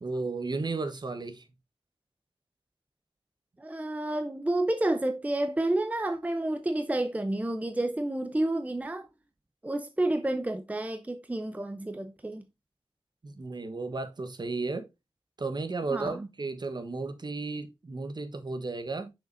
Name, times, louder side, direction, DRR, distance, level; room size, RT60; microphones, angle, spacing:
voice 1, 0.0-1.4 13.2-14.9 15.4-19.1, right 3 dB, 45° right, 1.2 m, -34 dB
voice 2, 3.6-9.1 9.6-12.4 15.9-16.2, right 1 dB, 15° right, 0.7 m, -30 dB
6.6 x 6.5 x 2.6 m
wide cardioid pair, 100°, 10 cm